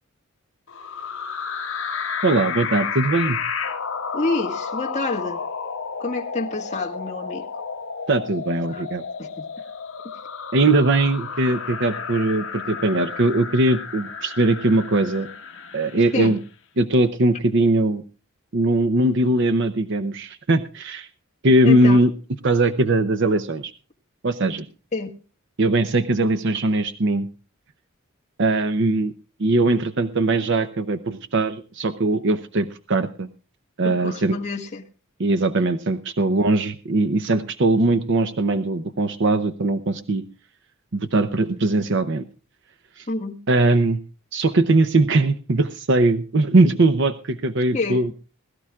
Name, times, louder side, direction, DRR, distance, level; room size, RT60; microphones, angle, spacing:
sound 1, 0.7-16.4, left 6 dB, 65° left, 1.3 m, -32 dB
voice 1, 2.2-3.4 8.1-9.0 10.5-15.3 15.7-16.4 16.8-18.0 18.5-21.1 21.4-22.1 22.4-23.7 24.2-24.7 25.6-27.3 28.4-29.1 29.4-33.3 33.8-34.4 35.2-40.2 40.9-42.2 43.0-43.1 43.5-44.0 44.3-48.1, right 2 dB, 55° right, 0.7 m, -20 dB
voice 2, 4.1-5.4 6.0-7.4 8.7-8.8 9.2-9.5 16.1-16.4 21.6-22.0 24.9-25.1 33.8-34.8 43.1-43.4 47.7-48.1, left 3 dB, 35° left, 1.8 m, -28 dB
21.0 x 13.0 x 2.4 m
head